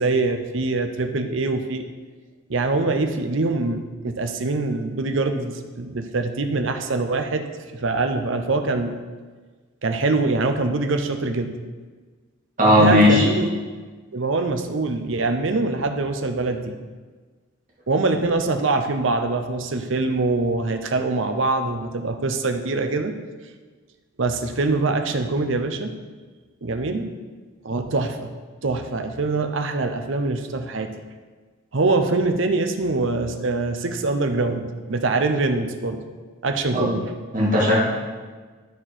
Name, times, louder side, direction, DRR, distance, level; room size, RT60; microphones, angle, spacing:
voice 1, 0.0-1.9 2.5-9.0 9.8-11.6 12.8-13.5 14.1-16.8 17.9-23.2 24.2-25.9 26.6-27.1 27.6-28.3 28.6-30.9 31.7-36.1 36.4-37.1, right 3 dB, 65° right, 7 dB, 0.7 m, -24 dB
voice 2, 12.6-13.3 36.7-36.9 37.3-37.8, left 1 dB, 35° right, -5 dB, 2.1 m, -16 dB
11.5 x 4.4 x 4.4 m, 1.4 s
head